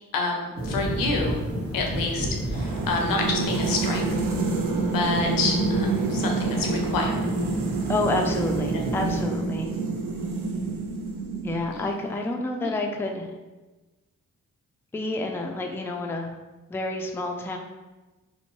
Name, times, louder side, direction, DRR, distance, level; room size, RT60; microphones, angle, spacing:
voice 1, 0.1-1.4 1.7-4.1 4.9-7.2 8.7-8.8 11.7-11.9 12.6-12.7, left 3 dB, 90° left, 2 dB, 0.5 m, -28 dB
sound 1, 0.5-9.2, right 1 dB, 45° right, 1.0 m, -33 dB
sound 2, 2.5-11.9, right 3 dB, 75° right, 0.5 m, -27 dB
voice 2, 7.9-9.7 11.4-13.3 14.9-16.3 16.7-17.6, left 2 dB, 5° left, 2 dB, 0.3 m, -29 dB
2.6 x 2.2 x 2.9 m, 1.2 s
cardioid pair, 45°, 33 cm